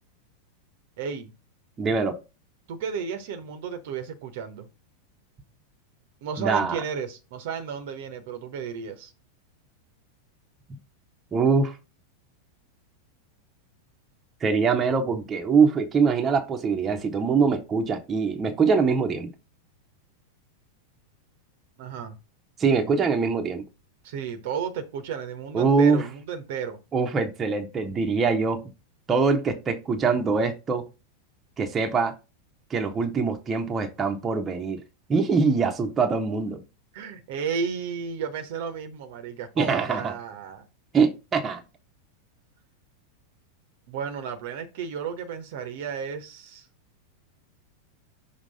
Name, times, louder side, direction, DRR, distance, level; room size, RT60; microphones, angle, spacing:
voice 1, 1.0-1.3 2.7-4.7 6.2-9.1 21.8-22.2 24.0-26.8 36.9-40.6 43.9-46.7, right 6 dB, 50° right, 0.9 m, -33 dB
voice 2, 1.8-2.2 6.4-6.8 11.3-11.7 14.4-19.3 22.6-23.6 25.5-26.0 26.9-28.7 29.1-30.9 31.6-32.1 32.7-34.8 35.1-36.6 39.6-40.1 40.9-41.6, right 5 dB, 20° right, 0.9 m, -23 dB
6.1 x 2.9 x 5.4 m
figure-of-eight pair, 90°, 0 cm